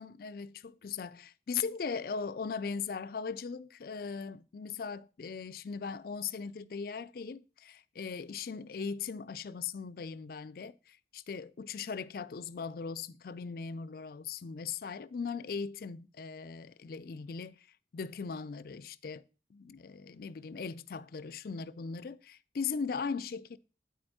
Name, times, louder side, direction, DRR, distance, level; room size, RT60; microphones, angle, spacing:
voice 1, 0.0-17.6 17.9-19.2 19.5-23.6, left 5 dB, 55° left, 0.4 m, -39 dB
9.4 x 4.3 x 6.1 m
head